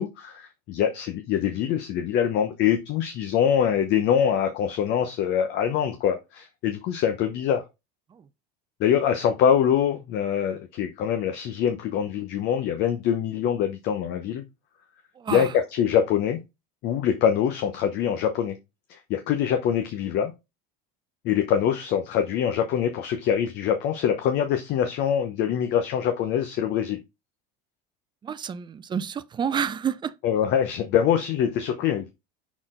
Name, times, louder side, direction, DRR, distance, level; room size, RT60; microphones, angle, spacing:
voice 1, 0.0-7.6 8.8-14.4 15.3-16.4 16.8-18.6 18.9-20.3 21.2-27.0 30.2-32.1, left 9 dB, 55° left, 0.9 m, -24 dB
voice 2, 15.2-15.5 28.2-30.1, right 7 dB, 20° right, 0.5 m, -29 dB
6.1 x 4.3 x 3.7 m
supercardioid pair, 110°, 21 cm